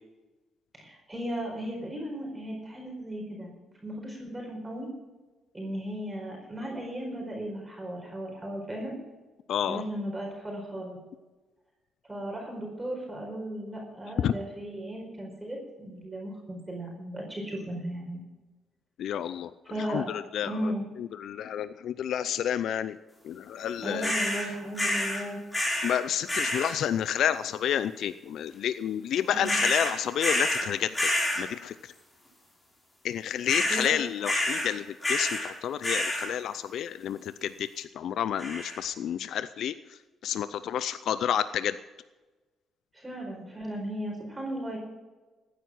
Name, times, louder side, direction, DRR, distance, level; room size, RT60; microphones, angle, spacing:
voice 1, 0.7-3.5 3.8-4.9 5.5-8.9 9.7-11.0 12.1-18.2 19.6-20.1 20.4-20.8 23.8-25.4 29.3-29.6 33.7-33.9 42.9-44.8, right 1 dB, 15° right, -1 dB, 4.6 m, -36 dB
voice 2, 9.5-9.8 14.2-14.3 19.0-19.5 19.9-20.7 21.0-23.0 23.2-24.1 25.8-31.1 31.4-31.9 33.0-39.7 40.2-41.8, left 9 dB, 70° left, 14 dB, 0.5 m, -30 dB
sound 1, 24.0-24.5 24.8-25.2 25.5-26.0 26.3-26.7 29.4-30.7 30.9-31.4 33.5-33.9 34.2-34.7 35.0-35.5 35.8-36.3 38.4-38.8, left 1 dB, 20° left, 5.4 m, -28 dB
15.0 x 9.4 x 6.1 m, 1.2 s
cardioid pair, 90°, 0 cm